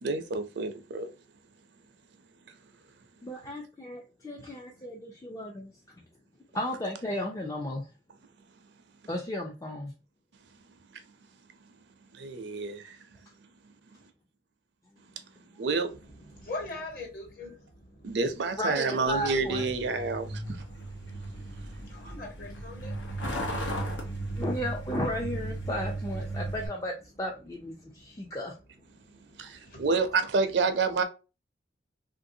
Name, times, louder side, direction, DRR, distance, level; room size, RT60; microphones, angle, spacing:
voice 1, 0.0-1.1 12.2-13.0 15.6-15.9 18.0-20.6 21.6-21.7 29.4-31.0, right 4 dB, 75° right, 0.5 m, -29 dB
voice 2, 3.2-5.7 6.5-7.9 9.1-9.9 18.6-19.7 24.4-26.9 27.2-28.5, left 1 dB, 20° left, 0.3 m, -34 dB
voice 3, 15.9-18.2 19.9-24.5 27.7-28.4 28.9-29.8, left 2 dB, 50° left, 1.3 m, -45 dB
Truck, 19.1-26.7, right 1 dB, 90° left, 0.9 m, -36 dB
3.3 x 2.6 x 2.6 m
head